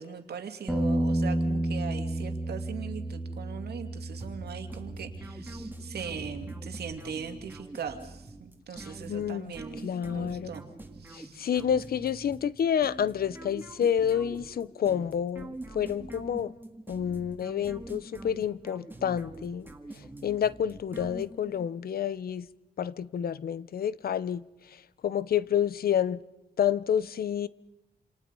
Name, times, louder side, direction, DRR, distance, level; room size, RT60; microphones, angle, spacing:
voice 1, 0.0-10.7 11.0-11.5, right 6 dB, 80° right, 2.4 m, -40 dB
Bass guitar, 0.7-6.9, right 1 dB, 5° left, 3.4 m, -32 dB
sound 1, 4.2-21.7, right 2 dB, 10° right, 2.0 m, -45 dB
voice 2, 9.1-9.5 9.8-10.5 11.1-16.5 16.9-19.7 20.2-22.5 22.8-24.4 25.0-26.2 26.6-27.5, left 9 dB, 70° left, 0.8 m, -29 dB
28.5 x 28.0 x 5.5 m
wide cardioid pair, 175°, 16 cm